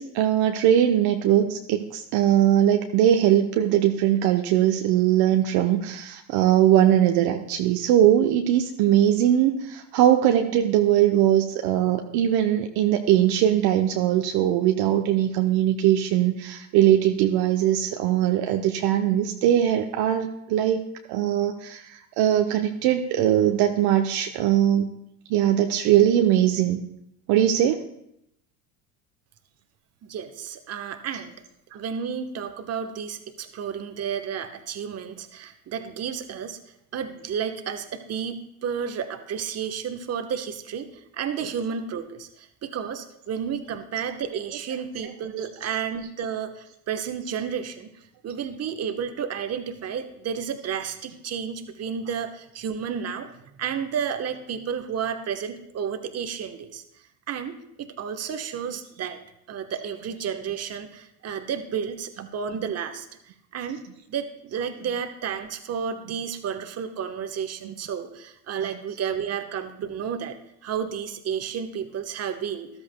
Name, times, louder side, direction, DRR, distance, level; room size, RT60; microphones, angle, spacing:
voice 1, 0.0-20.8 21.1-24.9 25.3-26.8 27.3-27.8 45.0-45.1 45.4-45.5 67.6-67.7, right 11 dB, 55° right, 4 dB, 0.8 m, -21 dB
voice 2, 30.0-31.3 31.7-36.6 36.9-47.9 48.2-53.3 53.6-56.8 57.3-59.2 59.5-63.1 63.5-70.4 70.6-72.7, right 7 dB, 35° right, 7 dB, 1.1 m, -31 dB
13.5 x 12.5 x 2.2 m, 0.79 s
hypercardioid pair, 85°, 44 cm